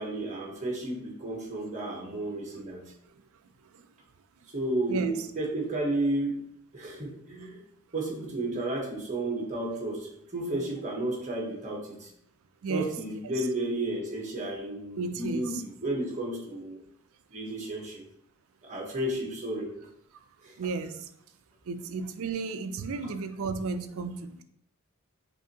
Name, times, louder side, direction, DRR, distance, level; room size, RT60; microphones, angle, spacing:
voice 1, 0.0-2.9 4.5-6.4 6.7-7.6 7.9-12.1 12.7-16.8 17.3-18.0 18.6-19.7 20.4-20.5 23.0-23.1, right 1 dB, 35° right, -1 dB, 1.1 m, -32 dB
voice 2, 15.0-15.5 20.6-21.1 21.7-24.4, right 4 dB, 65° right, 9 dB, 0.4 m, -33 dB
5.9 x 2.6 x 2.8 m, 0.72 s
head